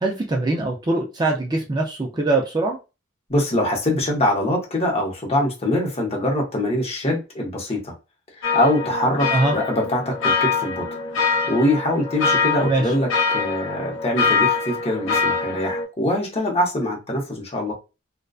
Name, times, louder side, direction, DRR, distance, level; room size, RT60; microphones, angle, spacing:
voice 1, 0.0-2.8 9.3-9.5 12.6-12.8, right 2 dB, 20° right, 0.4 m, -22 dB
voice 2, 3.3-7.9 8.4-10.9 11.5-17.7, left 1 dB, 30° left, 0.8 m, -23 dB
sound 1, 8.4-15.9, left 4 dB, 80° left, 0.7 m, -24 dB
2.5 x 2.1 x 2.3 m
head